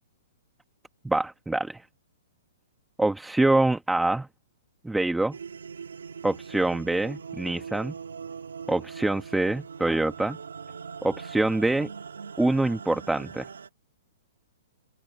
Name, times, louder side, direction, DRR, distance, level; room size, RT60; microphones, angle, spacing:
voice 1, 1.0-1.8 3.0-4.3 4.8-5.3 6.2-7.9 8.7-10.4 11.0-11.9 12.4-13.5, right 2 dB, 5° right, 1.3 m, -25 dB
sound 1, 5.3-13.7, right 6 dB, 85° right, 2.5 m, -41 dB
open air
hypercardioid pair, 135°, 0 cm